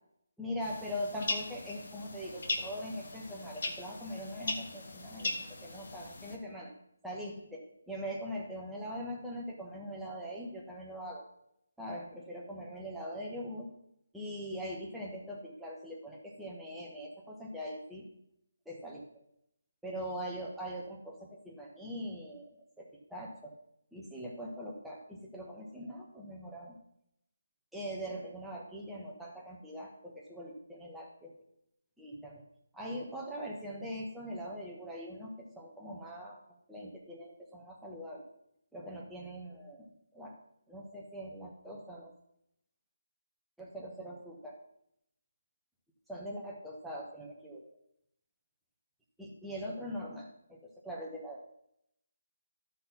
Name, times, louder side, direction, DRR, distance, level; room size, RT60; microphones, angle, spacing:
voice 1, 0.4-6.7 7.0-11.2 11.8-13.7 14.1-18.0 18.6-19.0 19.8-22.5 22.8-23.5 23.9-26.8 27.7-31.3 32.0-32.4 32.7-36.4 36.7-38.2 38.7-39.9 40.1-40.4 40.7-42.1 43.6-44.6 46.1-47.6 49.2-51.4, equal, 5° right, -4 dB, 1.4 m, -42 dB
sound 1, 0.6-6.4, left 2 dB, 55° left, 1.4 m, -39 dB
12.0 x 4.1 x 5.7 m, 0.77 s
figure-of-eight pair, 155°, 0 cm